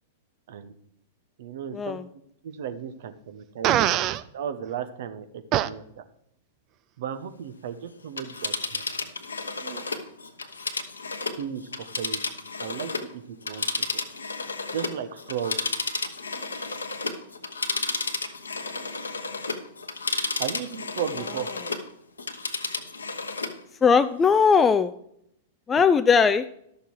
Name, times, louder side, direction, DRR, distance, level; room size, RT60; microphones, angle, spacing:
voice 1, 1.4-2.0 2.4-4.0 4.3-6.0 7.0-8.8 9.6-9.9 11.4-11.6 12.0-12.2 12.6-14.0 14.7-15.6 20.4-21.5 25.8-25.9, right 8 dB, 60° right, 10 dB, 1.1 m, -35 dB
Fart, 3.6-4.2 5.5-5.7, right 13 dB, 35° right, 0.5 m, -22 dB
Telephone, 8.0-13.1 13.4-21.9 22.2-23.6 24.0-24.1, left 4 dB, 80° left, 1.0 m, -32 dB
voice 2, 23.8-24.9 25.7-26.5, left 6 dB, 20° left, 12 dB, 0.4 m, -19 dB
12.5 x 6.7 x 4.7 m, 0.74 s
figure-of-eight pair, 100°, 0 cm